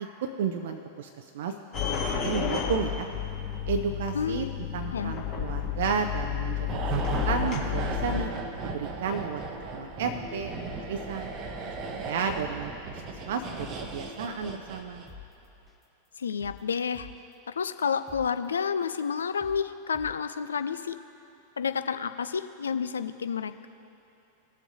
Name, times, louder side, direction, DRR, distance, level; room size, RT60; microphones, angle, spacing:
voice 1, 0.0-1.5 1.9-3.1 3.7-4.5 4.7-6.7 6.9-8.3 8.7-9.4 9.7-11.3 11.9-15.0, right 6 dB, 55° right, 5 dB, 0.5 m, -32 dB
sound 1, 1.7-8.2, left 8 dB, 35° left, 1.8 m, -31 dB
voice 2, 4.1-4.5 4.9-5.1 16.2-17.1 17.6-21.0 21.6-23.7, left 6 dB, 70° left, 11 dB, 0.4 m, -30 dB
sound 2, 6.7-15.2 15.5-15.7, right 4 dB, 35° right, 0.8 m, -36 dB
sound 3, 15.1-15.2 15.7-15.8 16.2-17.3 17.7-17.8 18.1-18.2 18.7-18.8 19.2-19.6 19.9-20.1, left 5 dB, 5° right, 0.9 m, -47 dB
19.5 x 7.2 x 2.7 m, 2.9 s
figure-of-eight pair, 90°, 0 cm